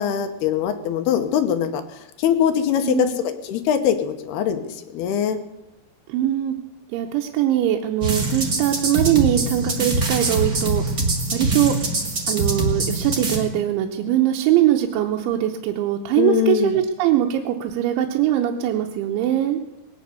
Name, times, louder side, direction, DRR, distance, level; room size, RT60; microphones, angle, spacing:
voice 1, 0.0-1.8 2.2-5.4 16.2-16.8, left 9 dB, 70° left, 8 dB, 2.7 m, -22 dB
voice 2, 2.8-3.2 6.1-6.5 6.9-10.8 11.3-11.7 12.3-19.6, right 11 dB, 85° right, 2 dB, 3.2 m, -21 dB
sound 1, 8.0-13.4, right 2 dB, 35° right, 1.6 m, -23 dB
20.0 x 9.2 x 6.7 m, 1.0 s
omnidirectional pair, 5.2 m